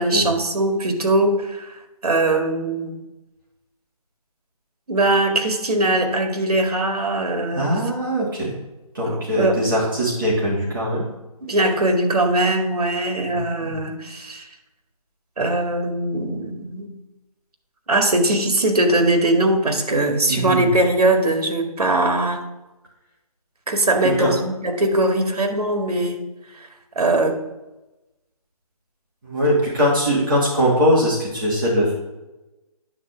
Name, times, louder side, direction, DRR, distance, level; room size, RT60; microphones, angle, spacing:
voice 1, 0.0-3.0 4.9-7.8 9.0-9.6 11.4-14.5 15.4-16.9 17.9-22.4 23.7-26.2 26.6-26.7 27.0-27.4, right 2 dB, 75° right, 4 dB, 2.1 m, -21 dB
voice 2, 7.5-8.5 8.9-11.0 13.3-13.8 20.3-20.7 24.2-24.3 29.2-31.9, equal, 35° right, -6 dB, 2.7 m, -21 dB
9.8 x 4.2 x 7.2 m, 1.0 s
hypercardioid pair, 175°, 20 cm